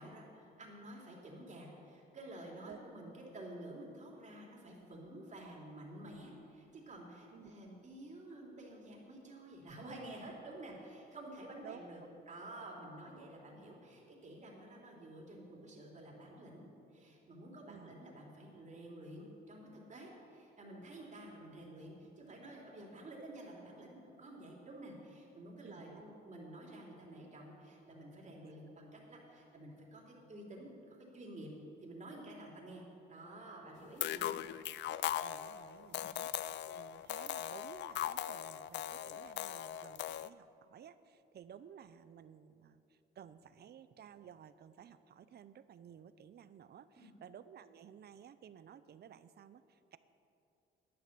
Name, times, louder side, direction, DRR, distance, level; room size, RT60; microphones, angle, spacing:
voice 1, 0.0-16.7 16.9-31.5 31.8-32.8 33.1-34.4 35.9-36.1 47.0-47.1, right 1 dB, 35° right, -2 dB, 3.3 m, -51 dB
voice 2, 11.6-12.1 17.6-17.9 25.6-26.0 28.4-28.5 35.2-50.0, right 8 dB, 55° right, 14 dB, 0.6 m, -55 dB
sound 1, 34.0-40.3, left 12 dB, 65° left, 0.4 m, -39 dB
11.0 x 10.5 x 6.8 m, 2.7 s
cardioid pair, 90°, 20 cm